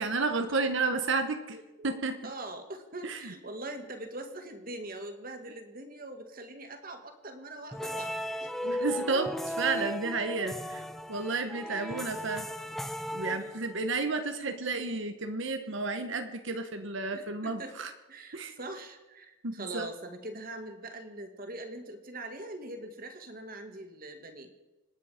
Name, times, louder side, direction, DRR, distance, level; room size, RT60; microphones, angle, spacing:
voice 1, 0.0-1.6 1.8-2.2 3.0-3.3 8.7-12.5 13.1-17.9 18.3-18.6 19.4-19.9, right 3 dB, 60° right, 7 dB, 1.1 m, -32 dB
voice 2, 1.5-8.9 11.6-12.1 13.3-13.6 17.1-17.8 18.1-24.5, right 1 dB, 40° right, 6 dB, 1.9 m, -43 dB
sound 1, 7.7-14.0, equal, ahead, 0.5 m, -36 dB
26.0 x 10.0 x 5.0 m, 1.1 s
head